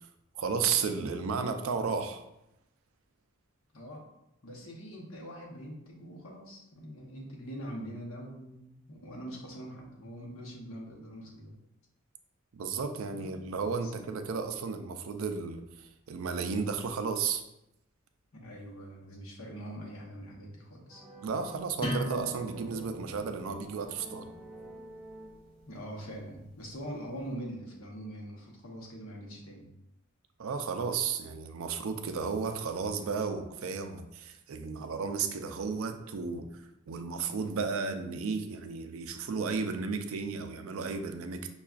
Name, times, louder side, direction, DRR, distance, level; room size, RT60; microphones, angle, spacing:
voice 1, 0.3-2.2 12.5-17.4 21.2-24.3 30.4-41.5, right 5 dB, 70° right, 7 dB, 0.4 m, -33 dB
voice 2, 3.7-4.0 4.4-11.6 13.1-13.4 13.8-13.9 18.3-21.0 25.7-29.7, equal, 75° left, -2 dB, 0.9 m, -43 dB
sound 1, 20.9-25.8, right 1 dB, 5° left, 0.4 m, -50 dB
sound 2, 21.8-27.2, equal, 25° left, 0.9 m, -41 dB
5.6 x 2.3 x 2.4 m, 0.86 s
head